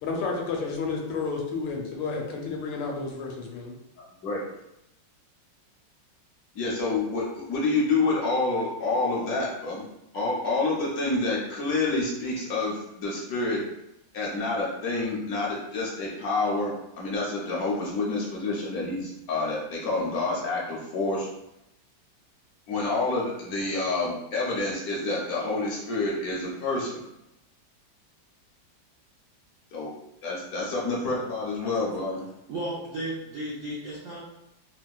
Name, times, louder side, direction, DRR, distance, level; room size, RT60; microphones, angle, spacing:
voice 1, 0.0-3.7, left 4 dB, 80° left, 0 dB, 1.3 m, -31 dB
voice 2, 6.5-9.9 10.1-13.6 14.1-21.3 22.7-27.0 29.7-29.9 30.2-32.2, left 3 dB, 65° left, -4 dB, 0.9 m, -28 dB
voice 3, 32.5-34.2, right 1 dB, 75° right, -7 dB, 0.7 m, -34 dB
4.4 x 2.2 x 2.3 m, 0.86 s
omnidirectional pair, 2.1 m